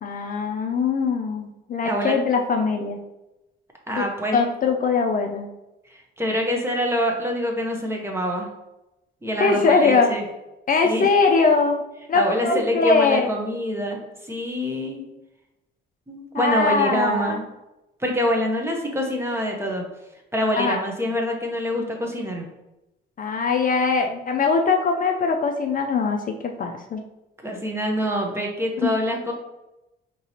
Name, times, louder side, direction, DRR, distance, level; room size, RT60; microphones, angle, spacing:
voice 1, 0.0-3.0 4.0-4.1 4.3-5.5 9.4-10.1 10.7-11.8 12.1-13.3 16.3-17.4 20.5-20.8 23.2-27.0 28.8-28.9, left 4 dB, 45° left, 3 dB, 0.5 m, -21 dB
voice 2, 1.8-2.2 3.9-4.4 5.9-8.5 9.2-10.2 10.8-11.1 12.1-15.0 16.1-17.4 18.0-19.8 20.3-22.5 27.4-29.3, equal, 10° right, 0 dB, 0.9 m, -25 dB
4.7 x 2.9 x 2.8 m, 0.95 s
cardioid pair, 90°, 20 cm